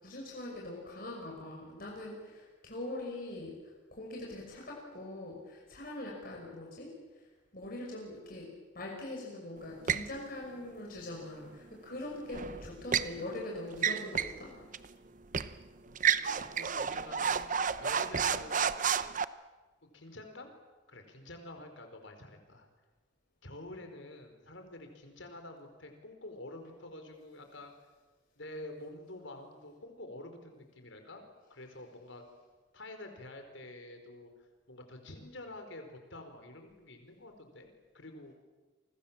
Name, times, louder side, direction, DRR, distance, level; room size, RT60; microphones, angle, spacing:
voice 1, 0.0-3.5 3.9-6.9 7.5-8.5 8.7-14.5, left 1 dB, 45° left, -2 dB, 6.1 m, -42 dB
sound 1, 9.9-10.1 12.3-13.1 13.7-14.4 14.7-14.9 15.3-15.5 16.0-19.2, right 7 dB, 40° right, 0.8 m, -31 dB
voice 2, 15.8-19.1 19.9-20.5 20.9-22.7 23.4-27.7 28.4-31.2 31.5-32.2 32.7-34.3 34.7-38.3, left 1 dB, 70° left, 6 dB, 4.7 m, -48 dB
30.0 x 24.5 x 7.5 m, 1.3 s
head